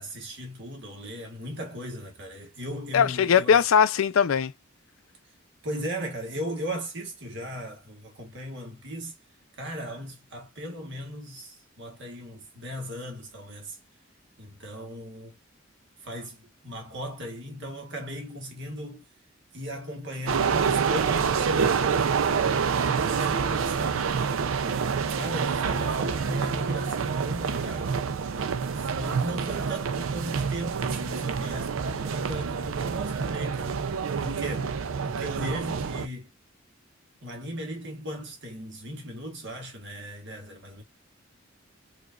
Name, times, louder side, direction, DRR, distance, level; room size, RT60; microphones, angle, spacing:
voice 1, 0.0-3.6 5.6-9.1 9.6-13.8 14.4-15.4 16.0-19.0 19.5-22.8 23.1-24.1 24.6-28.0 28.7-33.7 34.2-34.8 35.0-36.3 37.2-40.8, equal, 60° right, 1.4 m, -37 dB
voice 2, 2.9-4.5, left 7 dB, 85° left, 0.4 m, -20 dB
sound 1, 20.3-36.1, right 6 dB, 80° right, 0.5 m, -27 dB
4.9 x 2.4 x 2.4 m
head